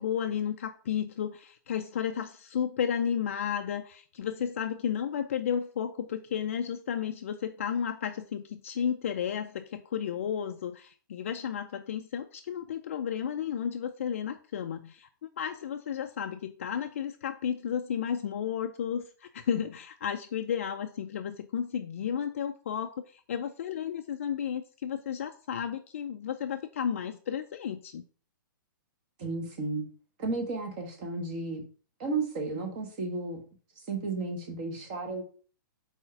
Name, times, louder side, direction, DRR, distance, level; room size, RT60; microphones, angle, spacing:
voice 1, 0.0-15.1 15.4-28.0, left 8 dB, 40° left, 6 dB, 0.4 m, -33 dB
voice 2, 29.2-29.9 30.2-31.6 32.0-33.4 33.9-35.2, right 3 dB, 25° right, 4 dB, 1.1 m, -33 dB
4.6 x 4.3 x 5.5 m, 0.41 s
hypercardioid pair, 180°, 11 cm